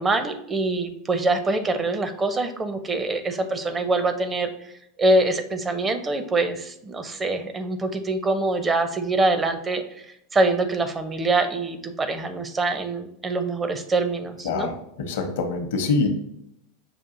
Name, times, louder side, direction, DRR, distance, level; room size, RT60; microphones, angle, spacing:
voice 1, 0.0-4.5 5.0-9.8 10.3-14.7, right 2 dB, 20° right, 8 dB, 0.6 m, -24 dB
voice 2, 14.4-16.1, left 4 dB, 75° left, 5 dB, 0.8 m, -25 dB
6.1 x 2.5 x 2.5 m, 0.77 s
hypercardioid pair, 95°, 0 cm